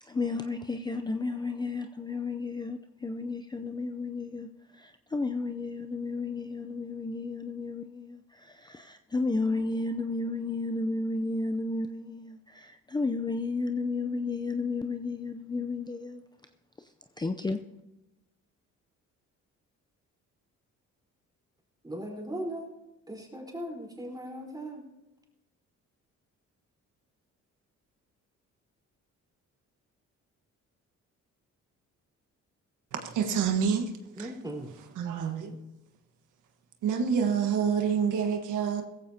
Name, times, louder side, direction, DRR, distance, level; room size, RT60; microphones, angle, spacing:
voice 1, 0.0-4.5 4.7-16.2 16.8-16.9 17.2-17.6, left 3 dB, 15° left, 0.5 m, -32 dB
voice 2, 21.8-22.6 23.1-24.8 34.2-34.7, right 1 dB, 15° right, 4.1 m, -38 dB
voice 3, 32.9-33.9 34.2-34.3 35.0-35.6 36.8-38.8, right 7 dB, 80° right, 1.5 m, -27 dB
16.5 x 15.0 x 2.8 m
cardioid pair, 90°, 30 cm